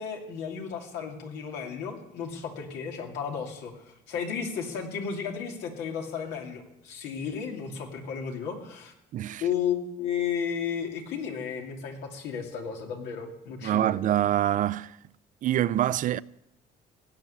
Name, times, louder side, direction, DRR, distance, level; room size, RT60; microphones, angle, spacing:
voice 1, 0.0-8.9 9.4-13.9, left 7 dB, 90° left, 2.6 m, -33 dB
voice 2, 9.1-9.4 13.6-15.0 15.4-16.2, right 12 dB, 50° right, 0.4 m, -25 dB
16.5 x 6.2 x 9.7 m
cardioid pair, 110°, 17 cm